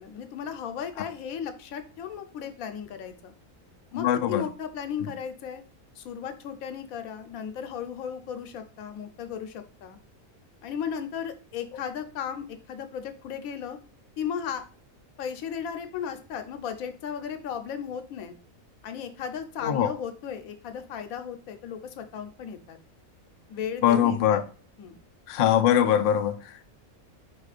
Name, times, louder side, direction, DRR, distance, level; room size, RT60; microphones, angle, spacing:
voice 1, 0.0-3.3 3.9-5.6 6.0-10.0 10.6-13.8 14.2-14.6 15.2-18.3 18.8-22.8 23.5-24.4 24.8-25.0, left 8 dB, 90° left, 8 dB, 1.1 m, -35 dB
voice 2, 3.9-4.4 5.0-5.1 19.6-19.9 23.8-24.4 25.3-26.6, left 10 dB, 65° left, 7 dB, 0.5 m, -22 dB
4.4 x 2.5 x 4.8 m, 0.39 s
omnidirectional pair, 1.4 m